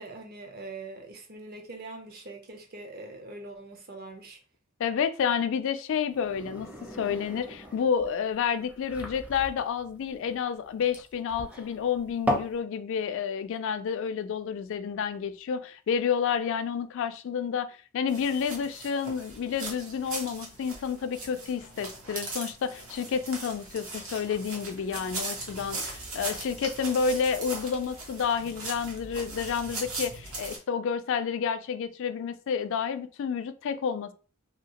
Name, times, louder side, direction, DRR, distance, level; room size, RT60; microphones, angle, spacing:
voice 1, 0.0-4.4, right 2 dB, 45° right, 0.6 m, -43 dB
voice 2, 4.8-6.7 7.0-17.7 17.9-34.1, left 7 dB, 60° left, 0.3 m, -30 dB
sound 1, 6.1-12.6, equal, 5° right, 0.5 m, -36 dB
sound 2, 18.1-30.6, right 3 dB, 75° right, 1.1 m, -39 dB
2.8 x 2.7 x 2.9 m
head